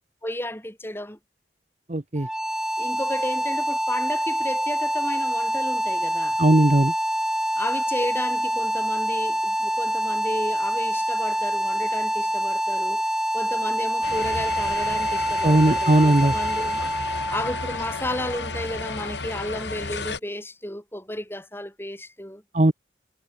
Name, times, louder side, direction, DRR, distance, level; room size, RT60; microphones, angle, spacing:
voice 1, 0.2-1.2 2.8-6.4 7.5-16.9 17.3-22.4, left 1 dB, 15° left, 6.3 m, -33 dB
voice 2, 1.9-2.3 6.4-6.9 15.4-16.3 22.5-22.7, right 1 dB, 40° right, 0.9 m, -18 dB
sound 1, 2.2-19.1, equal, 5° right, 1.9 m, -26 dB
sound 2, 14.0-20.2, left 3 dB, 90° left, 4.5 m, -33 dB
head